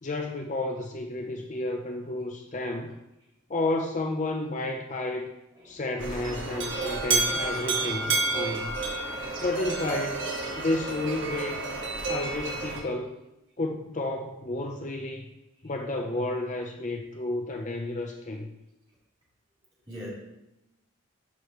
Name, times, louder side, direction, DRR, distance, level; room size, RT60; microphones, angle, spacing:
voice 1, 0.0-3.0 3.5-5.3 5.6-8.8 9.4-10.3 10.6-11.6 12.1-13.1 13.6-15.3 15.6-18.5, left 2 dB, 35° left, 3 dB, 0.5 m, -31 dB
voice 2, 5.5-6.2 15.6-15.7 19.9-20.1, equal, 25° right, -8 dB, 3.2 m, -44 dB
sound 1, 6.0-12.8, right 3 dB, 60° right, 1.5 m, -30 dB
12.5 x 5.0 x 3.1 m, 0.91 s
head